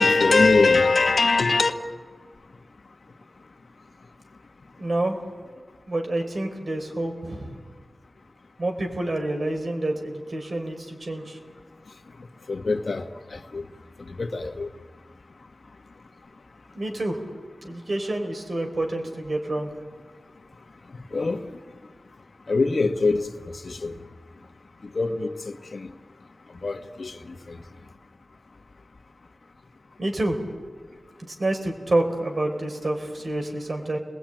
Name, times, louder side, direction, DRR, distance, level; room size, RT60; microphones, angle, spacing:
voice 1, 0.0-1.7 12.5-13.0 13.5-13.6 14.2-14.7 21.1-21.4 22.5-23.2 23.6-23.9 24.9-25.3 25.7-25.9 26.6-27.1, left 3 dB, 65° left, 1.5 m, -21 dB
voice 2, 4.8-5.2 5.9-7.6 8.6-11.4 16.7-17.2 17.6-19.7 30.0-30.4 31.3-34.0, right 1 dB, 55° right, 4.4 m, -28 dB
30.0 x 21.0 x 9.1 m
wide cardioid pair, 85°, 0 cm